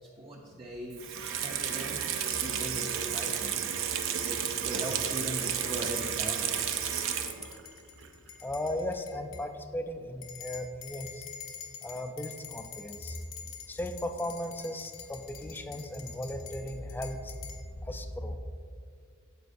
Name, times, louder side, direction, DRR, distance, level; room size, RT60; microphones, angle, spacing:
voice 1, 0.0-2.1 2.4-3.6 4.2-6.6, right 1 dB, 25° right, -1 dB, 0.6 m, -39 dB
Water tap faucet / Sink (filling or washing), 0.9-7.7 8.0-8.1, right 8 dB, 65° right, 0.6 m, -32 dB
sound 1, 2.1-2.5 3.4-3.5 4.5-5.0 5.5-9.5 10.2-17.6, left 8 dB, 65° left, 0.9 m, -47 dB
voice 2, 8.4-11.3 11.8-13.2 13.7-18.4, left 1 dB, 10° left, 7 dB, 0.4 m, -36 dB
9.1 x 7.3 x 2.6 m, 2.2 s
head